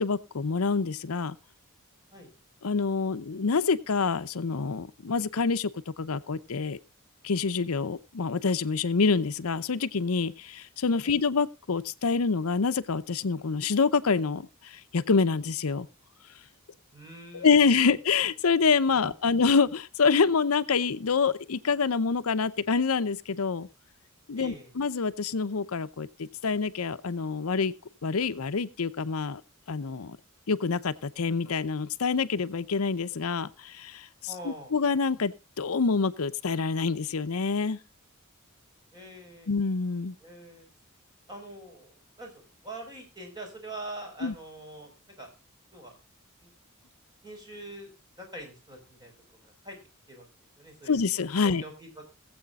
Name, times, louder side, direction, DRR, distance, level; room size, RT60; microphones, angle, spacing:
voice 1, 0.0-1.4 2.6-6.8 7.2-15.9 17.3-23.7 24.3-27.7 28.0-29.4 29.7-30.2 30.5-37.8 39.5-40.1 44.2-44.3 50.9-51.6, left 5 dB, 85° left, 0.7 m, -26 dB
voice 2, 16.9-18.0 19.0-19.3 24.3-24.7 34.3-34.7 38.9-39.5 40.2-40.7 41.3-44.9 45.2-45.3 45.7-46.0 46.4-46.5 47.2-47.9 48.2-49.1 49.4-49.8 50.1-50.3 50.6-51.0 51.4-51.9, right 1 dB, 20° right, 4.6 m, -44 dB
22.0 x 7.8 x 2.4 m
head